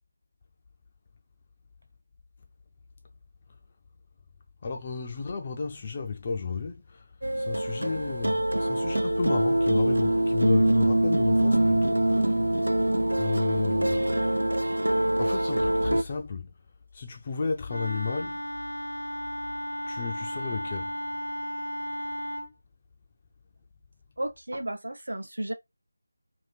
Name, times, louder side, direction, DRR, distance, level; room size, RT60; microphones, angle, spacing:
voice 1, 4.6-7.1 7.4-12.6 13.1-14.3 15.2-16.5 16.9-18.4 19.9-21.0, left 5 dB, 25° left, 0.4 m, -33 dB
sound 1, 7.2-16.0, right 1 dB, 75° right, 0.3 m, -24 dB
Wind instrument woodwind instrument, 17.7-22.5, equal, 80° left, 0.5 m, -34 dB
voice 2, 24.2-25.5, right 1 dB, 60° right, 0.7 m, -33 dB
2.8 x 2.7 x 3.2 m
figure-of-eight pair, 165°, 0 cm